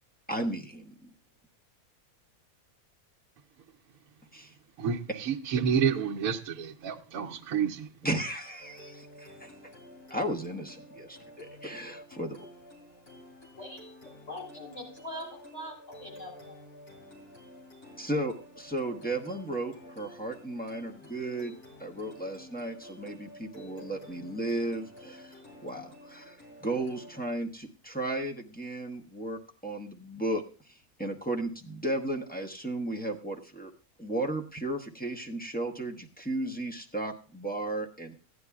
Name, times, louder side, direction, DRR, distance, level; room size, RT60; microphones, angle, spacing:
voice 1, 0.3-1.1 4.3-4.5 8.0-9.5 10.1-12.4 18.0-21.5 21.8-26.4 26.6-33.7 34.0-38.1, right 1 dB, 10° left, 0.7 m, -35 dB
voice 2, 4.8-7.9, right 7 dB, 70° right, 1.1 m, -29 dB
sound 1, 8.6-27.2, equal, 90° left, 3.4 m, -50 dB
voice 3, 14.3-15.7 16.0-16.6, left 1 dB, 50° left, 4.2 m, -42 dB
16.0 x 9.7 x 2.3 m
omnidirectional pair, 1.6 m